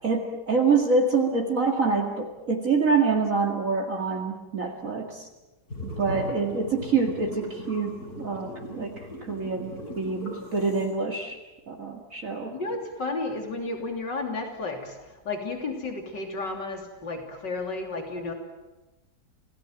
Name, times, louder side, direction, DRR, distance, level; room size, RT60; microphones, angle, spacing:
voice 1, 0.0-5.3 5.8-9.0 9.3-11.4 11.7-12.6, right 4 dB, 50° right, 1 dB, 2.5 m, -26 dB
sound 1, 5.7-10.9, left 1 dB, 60° left, 8.2 m, -38 dB
voice 2, 12.5-15.0 15.3-18.3, left 3 dB, 85° left, 4 dB, 3.8 m, -32 dB
28.5 x 18.0 x 9.2 m, 1.1 s
omnidirectional pair, 1.9 m